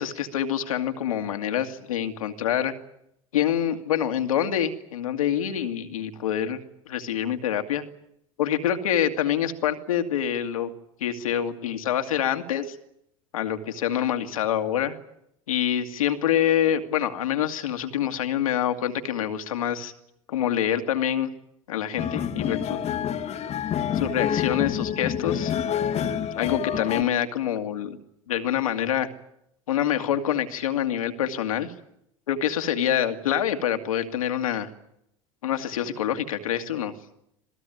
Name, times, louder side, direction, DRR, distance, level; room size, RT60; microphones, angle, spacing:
voice 1, 0.0-2.7 3.3-6.6 6.9-7.8 8.4-10.7 11.0-12.8 13.3-15.0 15.5-19.9 20.3-21.3 21.7-22.8 23.9-25.5 26.4-28.0 28.3-29.1 29.7-31.7 32.3-34.7 35.4-36.9, left 10 dB, 75° left, 7 dB, 2.1 m, -26 dB
sound 1, 22.0-27.0, left 9 dB, 35° left, 1.6 m, -27 dB
27.0 x 17.5 x 9.3 m, 0.77 s
hypercardioid pair, 80°, 18 cm